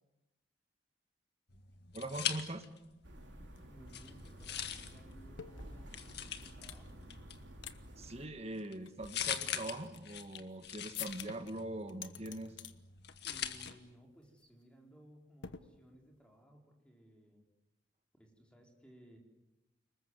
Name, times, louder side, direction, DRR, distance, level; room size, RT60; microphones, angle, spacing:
sound 1, 1.5-3.0 3.3-13.7, left 9 dB, 60° left, 1.9 m, -43 dB
voice 1, 1.9-2.7 8.0-12.5, right 1 dB, 35° right, 9 dB, 1.6 m, -42 dB
sound 2, 3.0-8.3, equal, 70° right, 3.3 m, -52 dB
sound 3, 3.6-3.7 3.9-6.9 7.3-8.1 8.6-10.6 10.9-11.5 11.9-12.7 13.1-13.4 13.7-13.9 14.2-14.5 15.4-16.2, left 9 dB, 85° left, 1.3 m, -50 dB
voice 2, 3.7-7.0 13.2-17.4 18.1-19.2, right 1 dB, 5° left, 1 dB, 4.7 m, -60 dB
30.0 x 21.0 x 8.0 m, 0.98 s
head